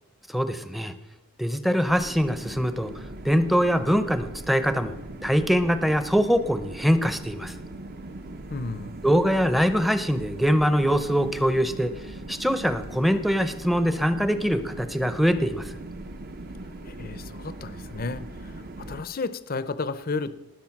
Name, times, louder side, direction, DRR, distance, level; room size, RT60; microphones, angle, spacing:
voice 1, 0.3-0.9 1.4-4.9 5.2-7.5 9.0-11.9 12.3-15.7, equal, ahead, 10 dB, 0.7 m, -23 dB
sound 1, 1.9-19.0, right 2 dB, 45° right, 0.8 m, -40 dB
voice 2, 8.5-9.0 16.8-18.5 18.8-20.4, left 3 dB, 40° left, 14 dB, 0.6 m, -32 dB
19.5 x 6.9 x 5.9 m, 0.98 s
head